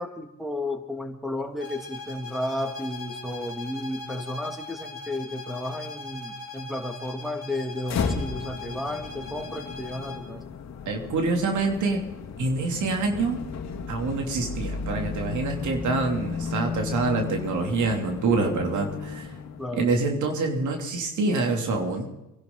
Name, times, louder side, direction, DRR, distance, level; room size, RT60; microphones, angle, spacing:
voice 1, 0.0-10.4 19.6-19.9, left 1 dB, ahead, 5 dB, 2.4 m, -33 dB
sound 1, 1.6-10.3, left 3 dB, 45° left, 3.2 m, -40 dB
sound 2, 7.8-19.8, left 5 dB, 60° left, 2.1 m, -34 dB
voice 2, 10.8-12.0 12.4-13.4 13.9-19.3 19.7-22.1, right 3 dB, 75° right, 3 dB, 3.0 m, -26 dB
24.5 x 11.5 x 3.9 m, 0.97 s
cardioid pair, 90°, 30 cm